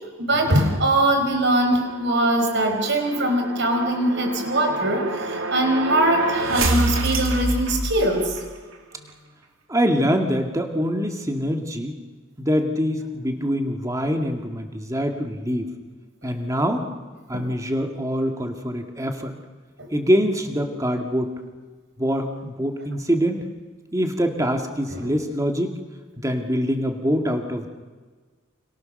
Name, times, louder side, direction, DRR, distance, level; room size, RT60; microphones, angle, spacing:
voice 1, 0.2-8.4 17.3-17.5 24.9-25.1, right 1 dB, 55° right, 5 dB, 5.1 m, -21 dB
sound 1, 1.7-8.5, right 2 dB, 70° right, 3.0 m, -28 dB
voice 2, 9.7-12.0 12.4-15.7 16.2-16.9 17.3-19.4 19.9-21.3 22.0-23.5 23.9-25.8 26.2-27.7, equal, 15° right, 4 dB, 2.2 m, -24 dB
29.0 x 28.0 x 6.7 m, 1.4 s
head